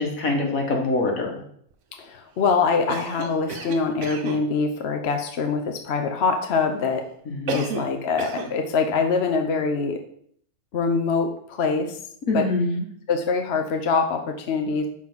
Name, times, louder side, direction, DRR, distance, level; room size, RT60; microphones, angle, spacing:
voice 1, 0.0-1.4 7.3-7.8 12.3-12.8, left 2 dB, 75° left, 1 dB, 1.9 m, -24 dB
voice 2, 2.0-7.1 7.5-10.0 10.7-12.0 12.3-12.5 13.1-14.9, left 4 dB, 55° left, 5 dB, 0.9 m, -24 dB
Cough, 2.9-4.5 7.5-7.9 8.2-8.6, right 4 dB, 70° right, 1.2 m, -31 dB
5.6 x 4.7 x 6.0 m, 0.64 s
omnidirectional pair, 1.5 m